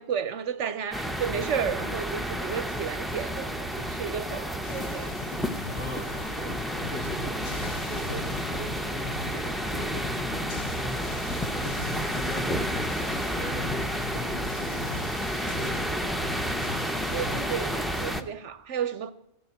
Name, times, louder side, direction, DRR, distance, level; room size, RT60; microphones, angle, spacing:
voice 1, 0.0-5.1 16.2-16.4 17.1-19.1, right 8 dB, 65° right, 0.9 m, -32 dB
sound 1, 0.9-18.2, equal, ahead, 0.4 m, -31 dB
sound 2, 4.6-18.2, left 6 dB, 80° left, 1.4 m, -41 dB
voice 2, 5.7-11.2 11.5-15.0 15.3-16.2 17.2-17.4, equal, 60° left, 3.4 m, -39 dB
16.0 x 7.1 x 8.7 m
omnidirectional pair, 1.4 m